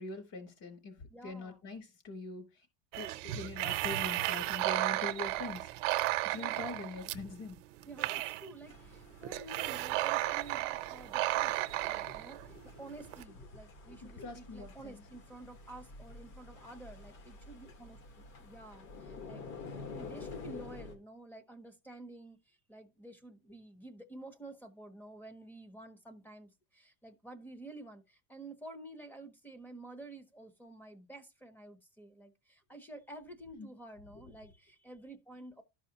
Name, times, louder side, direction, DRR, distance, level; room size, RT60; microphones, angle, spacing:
voice 1, 0.0-2.7 3.0-5.7 6.2-7.6 12.0-12.2 13.9-15.0 33.6-33.7, left 3 dB, 45° left, 3.4 m, -43 dB
voice 2, 1.1-1.6 6.4-6.6 7.9-35.6, right 2 dB, 5° left, 0.8 m, -51 dB
sound 1, 2.9-13.2, right 17 dB, 75° right, 0.7 m, -34 dB
sound 2, 8.6-20.9, left 3 dB, 85° left, 3.1 m, -50 dB
13.0 x 4.9 x 2.8 m
cardioid pair, 160°, 37 cm